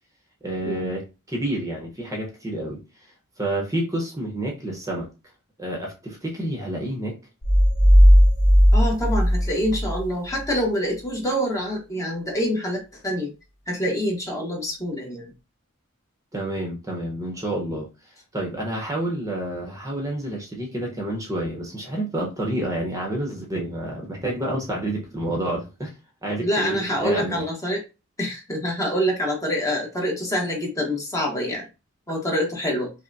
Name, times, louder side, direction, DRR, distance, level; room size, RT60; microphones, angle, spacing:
voice 1, 0.4-2.8 3.4-5.1 5.6-7.2 16.3-17.9 18.3-25.9 26.2-27.4, right 1 dB, 15° right, 0.8 m, -29 dB
sound 1, 7.4-10.0, equal, 65° left, 1.0 m, -15 dB
voice 2, 8.7-13.3 13.7-15.3 26.4-27.8 28.2-31.7 32.1-32.9, equal, 15° left, 0.9 m, -26 dB
5.3 x 2.1 x 2.6 m
head